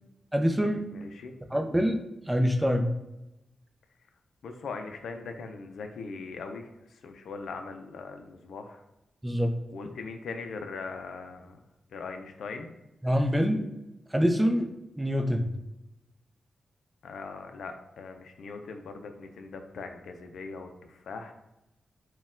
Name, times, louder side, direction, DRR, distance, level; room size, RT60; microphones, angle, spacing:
voice 1, 0.3-0.8 1.5-2.0 2.3-2.8 9.2-9.5 13.0-13.7 14.1-14.7 15.0-15.4, equal, 10° right, 4 dB, 0.5 m, -25 dB
voice 2, 0.9-1.3 4.4-6.7 7.0-8.8 9.7-11.6 11.9-12.7 17.0-21.3, left 4 dB, 85° left, 6 dB, 0.4 m, -40 dB
4.2 x 2.2 x 3.6 m, 0.93 s
cardioid pair, 80°, 0 cm